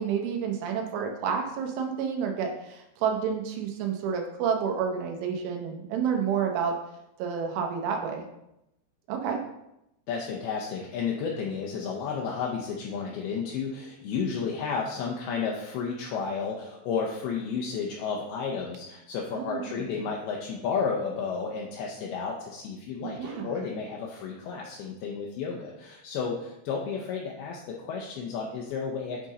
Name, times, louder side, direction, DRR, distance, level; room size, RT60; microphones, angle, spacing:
voice 1, 0.0-6.8 7.2-8.3 9.1-9.4 19.4-19.9 23.0-23.5, right 7 dB, 90° right, 2 dB, 3.4 m, -29 dB
voice 2, 10.1-29.3, left 5 dB, 80° left, -1 dB, 2.2 m, -32 dB
9.5 x 3.7 x 4.1 m, 0.85 s
omnidirectional pair, 5.3 m